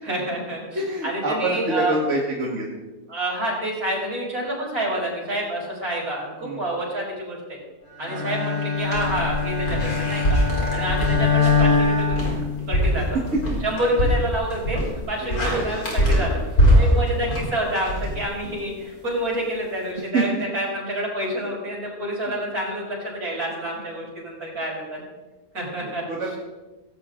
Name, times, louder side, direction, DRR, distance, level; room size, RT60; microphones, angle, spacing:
voice 1, 0.0-2.0 3.1-7.6 8.0-10.4 10.7-12.2 12.7-13.2 13.6-25.0 25.5-26.0, right 1 dB, 85° right, -4 dB, 6.0 m, -28 dB
voice 2, 0.7-2.7 6.4-6.6 8.1-8.3 10.6-10.7 15.2-15.6 16.6-17.2 20.1-20.2 22.3-22.4 26.1-26.3, right 2 dB, 55° right, -2 dB, 2.2 m, -27 dB
Bowed string instrument, 8.0-13.0, left 5 dB, 55° left, 5.3 m, -23 dB
sound 1, 8.8-18.7, equal, 85° left, 4.8 m, -23 dB
17.0 x 16.5 x 3.8 m, 1.1 s
omnidirectional pair, 1.5 m